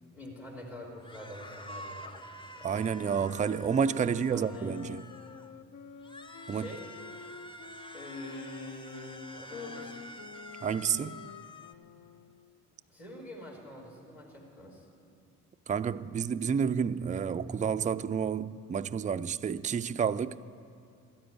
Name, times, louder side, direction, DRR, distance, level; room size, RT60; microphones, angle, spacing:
voice 1, 0.1-2.7 4.3-4.8 6.5-6.9 7.9-10.0 12.9-14.9, left 1 dB, 90° left, 3.6 m, -45 dB
sound 1, 1.0-5.5 6.0-11.7, left 1 dB, 15° left, 0.8 m, -48 dB
sound 2, 2.6-12.7, left 6 dB, 50° left, 0.7 m, -49 dB
voice 2, 2.6-5.0 6.5-6.7 10.6-11.2 15.7-20.4, right 7 dB, 20° right, 0.4 m, -30 dB
14.0 x 10.0 x 8.1 m
hypercardioid pair, 50°, 39 cm